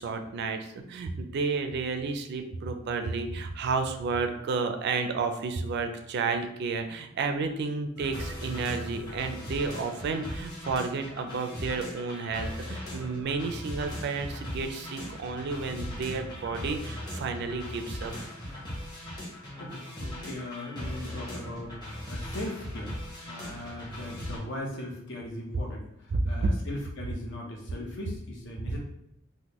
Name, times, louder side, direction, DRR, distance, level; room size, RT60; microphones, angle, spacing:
voice 1, 0.0-18.1 26.1-26.5 28.7-28.8, right 4 dB, 55° right, 6 dB, 0.4 m, -31 dB
sound 1, 8.0-24.4, left 1 dB, 20° left, 1.0 m, -39 dB
voice 2, 19.6-22.9 23.2-28.8, left 1 dB, 60° left, -1 dB, 0.8 m, -39 dB
3.5 x 2.2 x 2.9 m, 0.76 s
head